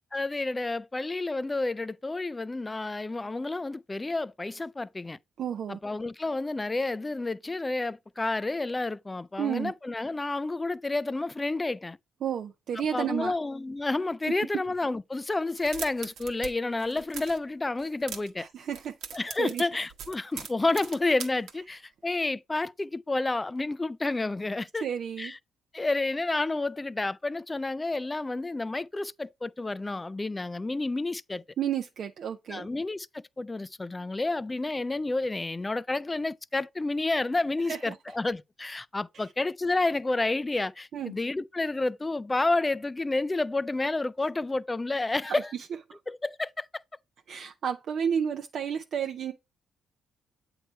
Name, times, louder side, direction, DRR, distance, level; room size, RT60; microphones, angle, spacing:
voice 1, 0.1-5.2 5.7-12.0 12.9-18.5 19.1-24.9 25.2-25.4 25.7-31.4 32.5-45.5 46.1-46.8, left 2 dB, 20° left, 0.3 m, -30 dB
voice 2, 5.4-5.8 9.4-9.7 12.2-13.3 18.4-18.9 19.4-19.7 24.8-25.3 31.6-32.7 37.7-38.0 40.9-41.2 45.9-46.0 47.3-49.3, right 8 dB, 65° right, 0.5 m, -31 dB
sound 1, 15.5-16.5 16.8-17.4 17.8-18.4 18.7-21.5, right 8 dB, 80° right, 1.0 m, -40 dB
8.0 x 3.2 x 4.3 m
cardioid pair, 90°, 0 cm